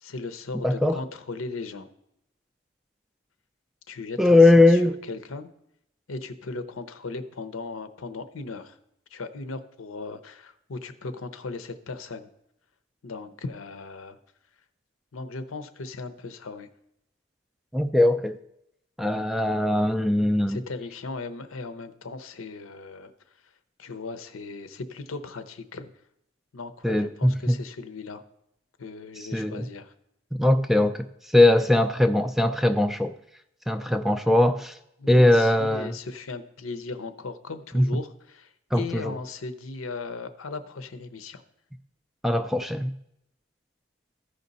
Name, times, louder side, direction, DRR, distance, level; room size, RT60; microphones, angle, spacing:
voice 1, 0.0-1.9 3.9-5.5 6.1-8.8 9.1-12.3 13.0-14.2 15.1-16.7 20.5-23.1 23.8-25.9 26.5-28.2 28.8-29.9 35.0-41.4, left 3 dB, 90° left, 0.7 m, -37 dB
voice 2, 0.6-1.0 4.2-5.0 17.7-18.4 19.0-20.6 26.8-27.6 29.2-29.7 30.3-33.1 33.7-34.8 35.1-36.0 37.7-37.8 38.7-39.1 42.2-42.9, left 1 dB, ahead, 0.3 m, -20 dB
14.0 x 5.2 x 4.0 m
head